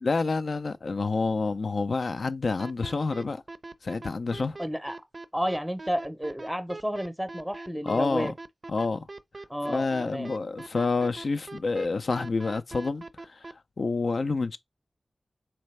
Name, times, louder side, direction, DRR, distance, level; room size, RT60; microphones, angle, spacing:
voice 1, 0.0-3.4 3.8-4.6 7.8-8.3 8.7-9.0 9.7-14.6, left 3 dB, 70° left, 0.4 m, -28 dB
sound 1, 2.6-13.5, right 2 dB, 50° right, 0.4 m, -41 dB
voice 2, 4.6-5.0 5.3-8.3 9.5-10.3, equal, ahead, 0.6 m, -31 dB
4.3 x 3.3 x 3.2 m
cardioid pair, 55°, 0 cm